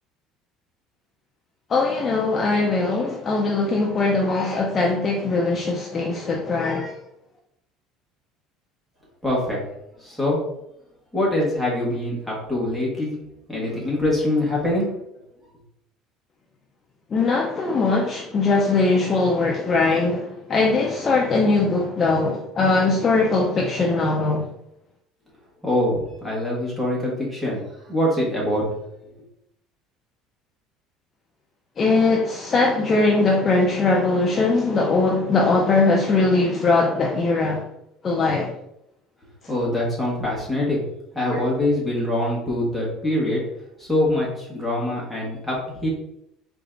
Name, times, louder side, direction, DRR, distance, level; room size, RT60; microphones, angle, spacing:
voice 1, 1.7-6.9 17.1-24.5 31.8-37.6 38.0-38.5 41.3-41.4, left 3 dB, 20° left, 0.5 m, -21 dB
voice 2, 9.2-9.6 10.0-10.4 11.1-13.1 13.5-14.9 25.6-27.6 27.9-28.6 39.5-40.8 41.1-43.4 43.8-45.9, left 1 dB, ahead, 1.5 m, -24 dB
4.0 x 3.5 x 3.8 m
cardioid pair, 175°, 0 cm